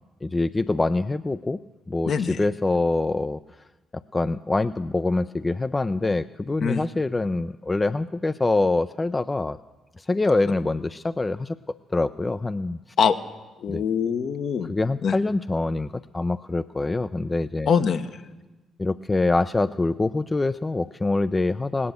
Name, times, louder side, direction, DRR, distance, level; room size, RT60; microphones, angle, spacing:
voice 1, 0.2-1.6 1.9-3.4 4.1-9.6 10.0-11.6 11.9-12.8 13.7-13.8 14.7-17.7 18.8-21.9, left 2 dB, 25° left, 12 dB, 0.5 m, -25 dB
voice 2, 2.0-2.4 6.6-6.8 13.0-13.2 13.6-14.7 15.0-15.2 17.7-18.2, left 6 dB, 60° left, 8 dB, 1.0 m, -23 dB
18.0 x 9.8 x 8.2 m, 1.1 s
hypercardioid pair, 45°, 0 cm